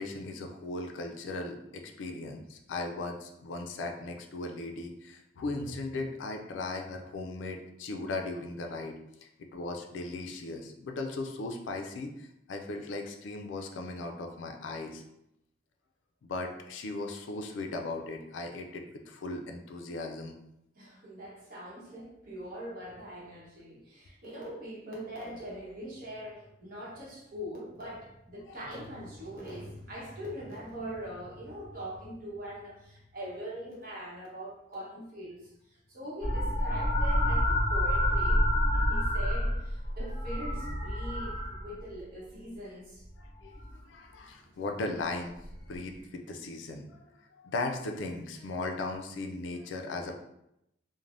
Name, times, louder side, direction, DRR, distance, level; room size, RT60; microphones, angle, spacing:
voice 1, 0.0-15.0 16.2-20.4 28.5-28.6 43.2-45.3 45.7-47.2 47.4-50.2, left 2 dB, 85° left, 4 dB, 0.4 m, -37 dB
voice 2, 20.7-38.5 38.7-43.0, equal, 50° right, -5 dB, 1.0 m, -42 dB
sound 1, 36.2-42.0 43.2-43.7 45.5-45.6, equal, 30° left, 0.9 m, -28 dB
3.2 x 2.1 x 2.5 m, 0.82 s
head